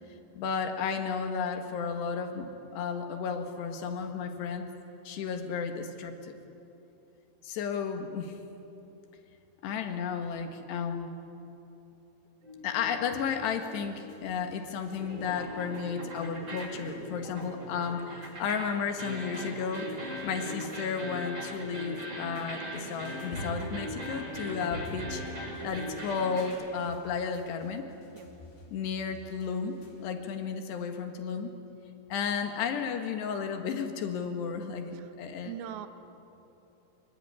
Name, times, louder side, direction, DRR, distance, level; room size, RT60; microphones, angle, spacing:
voice 1, 0.4-4.7 5.1-6.4 7.4-8.3 9.6-11.1 12.6-19.9 20.2-25.3 25.6-27.9 28.7-31.5 32.1-35.5, left 6 dB, 65° left, 6 dB, 3.5 m, -33 dB
sound 1, 12.4-14.6 14.9-26.5, equal, 20° right, 6.5 m, -40 dB
sound 2, 13.8-30.1, equal, 85° left, 6.5 m, -50 dB
voice 2, 35.4-35.9, right 10 dB, 70° right, 10 dB, 2.5 m, -40 dB
24.0 x 23.5 x 9.8 m, 3.0 s
omnidirectional pair, 5.6 m